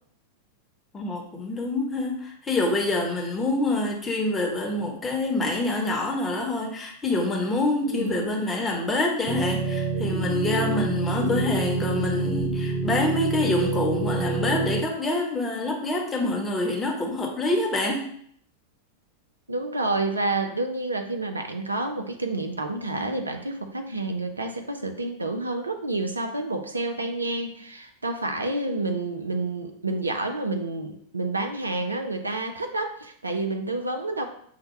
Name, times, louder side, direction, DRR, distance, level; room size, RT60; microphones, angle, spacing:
voice 1, 0.9-18.1, left 2 dB, 15° left, 0 dB, 0.9 m, -26 dB
voice 2, 7.8-8.3 11.2-11.5 19.5-34.3, right 2 dB, 80° right, 6 dB, 0.5 m, -29 dB
sound 1, 9.3-14.8, right 4 dB, 40° right, 0.6 m, -27 dB
5.6 x 2.2 x 3.1 m, 0.64 s
figure-of-eight pair, 90°, 0 cm